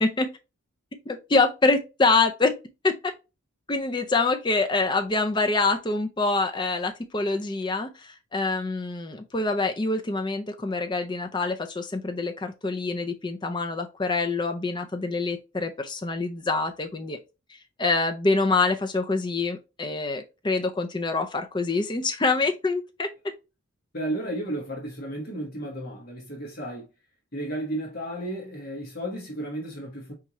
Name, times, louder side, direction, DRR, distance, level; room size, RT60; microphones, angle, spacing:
voice 1, 1.1-2.5 2.8-3.1 3.7-17.2 17.8-23.1, left 3 dB, 20° left, 0.4 m, -25 dB
voice 2, 23.9-26.9 27.3-30.1, right 1 dB, 45° left, 1.4 m, -33 dB
4.3 x 3.6 x 2.9 m
head